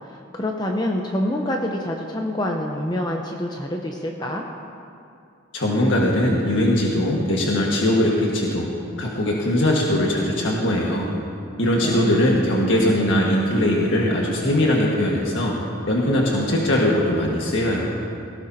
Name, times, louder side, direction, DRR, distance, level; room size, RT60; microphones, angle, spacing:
voice 1, 0.0-4.4 11.8-12.1, left 1 dB, 20° left, 1 dB, 0.7 m, -26 dB
voice 2, 5.5-8.7 9.0-11.1 11.6-15.6 15.9-17.9, left 1 dB, 75° left, -3 dB, 1.7 m, -20 dB
18.0 x 18.0 x 2.8 m, 2.5 s
head